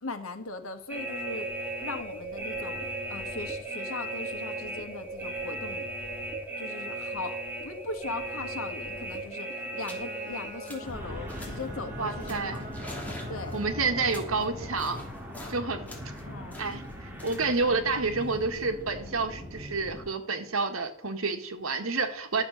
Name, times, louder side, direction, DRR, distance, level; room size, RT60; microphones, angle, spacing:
voice 1, 0.0-1.5 1.8-5.9 6.6-12.6 13.3-13.7 16.2-16.6, left 3 dB, 85° left, 7 dB, 1.6 m, -39 dB
sound 1, 0.9-20.1, right 1 dB, 10° right, 2.2 m, -37 dB
sound 2, 9.0-9.3 9.8-10.1 10.4-11.0 11.3-11.7 12.2-15.6 15.9-18.9, left 1 dB, 10° left, 2.9 m, -47 dB
Bowed string instrument, 9.8-14.2, right 1 dB, 35° right, 2.1 m, -46 dB
voice 2, 12.0-12.7 13.5-15.0 15.5-15.9 16.6-22.4, right 4 dB, 85° right, 6 dB, 1.7 m, -29 dB
12.5 x 7.1 x 6.4 m, 0.63 s
head